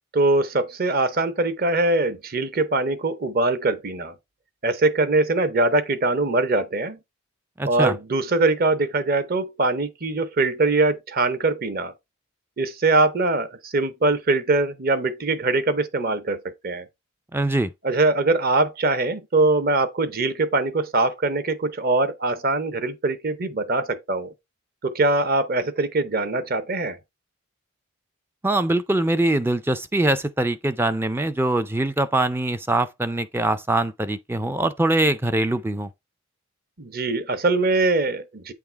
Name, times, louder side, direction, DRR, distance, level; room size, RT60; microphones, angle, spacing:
voice 1, 0.1-4.1 4.6-7.0 7.6-11.9 12.6-16.9 17.8-24.3 24.8-27.0 36.8-38.5, right 2 dB, 40° right, 0.8 m, -22 dB
voice 2, 7.6-7.9 17.3-17.7 28.4-35.9, right 2 dB, 10° right, 0.3 m, -23 dB
8.7 x 3.6 x 4.5 m
head